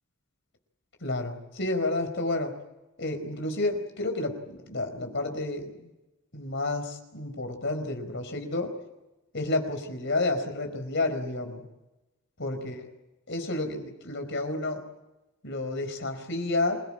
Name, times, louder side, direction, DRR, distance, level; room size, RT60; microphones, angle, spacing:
voice 1, 1.0-2.5 3.0-5.9 6.3-8.7 9.3-11.6 12.4-12.8 13.3-14.8 15.4-16.8, left 2 dB, 60° left, 6 dB, 4.8 m, -30 dB
27.5 x 17.5 x 8.8 m, 0.98 s
head